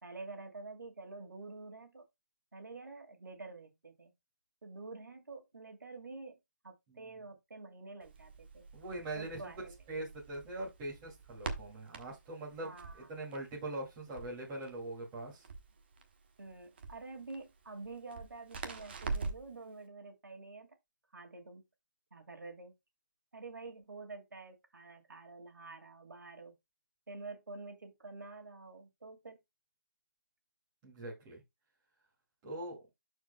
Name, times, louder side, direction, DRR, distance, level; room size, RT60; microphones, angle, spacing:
voice 1, 0.0-2.0 2.5-4.1 4.6-6.4 6.6-8.7 9.1-9.7 12.6-13.1 16.4-20.7 21.1-21.6 22.1-22.7 23.3-26.5 27.1-29.4, right 3 dB, 65° right, 2.1 m, -48 dB
Crackle, 8.0-19.6, right 4 dB, 30° right, 1.1 m, -45 dB
voice 2, 8.7-9.5 9.9-15.5 30.8-31.4 32.4-32.8, right 2 dB, 15° right, 2.4 m, -42 dB
12.5 x 4.6 x 2.2 m
figure-of-eight pair, 170°, 11 cm